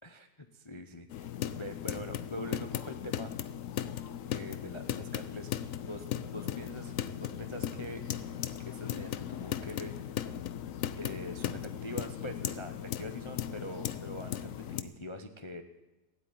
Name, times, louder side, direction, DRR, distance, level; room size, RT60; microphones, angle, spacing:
voice 1, 0.0-3.3 4.3-5.5 5.8-6.9 7.2-8.0 8.6-9.9 11.0-15.6, left 1 dB, 35° left, 6 dB, 0.4 m, -43 dB
sound 1, 1.1-14.8, left 10 dB, 65° left, 0.8 m, -37 dB
16.0 x 8.4 x 9.3 m, 1.1 s
omnidirectional pair, 1.9 m